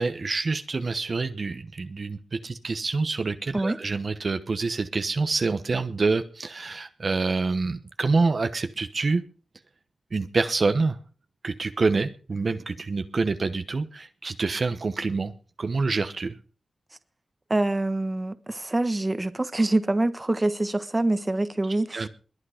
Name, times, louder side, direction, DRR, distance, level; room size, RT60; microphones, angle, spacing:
voice 1, 0.0-9.2 10.1-11.0 11.4-15.3 15.6-16.4 21.9-22.1, right 3 dB, 55° right, 1.0 m, -26 dB
voice 2, 17.5-22.1, right 2 dB, 25° right, 1.3 m, -25 dB
21.5 x 8.7 x 5.0 m
wide cardioid pair, 75°, 0 cm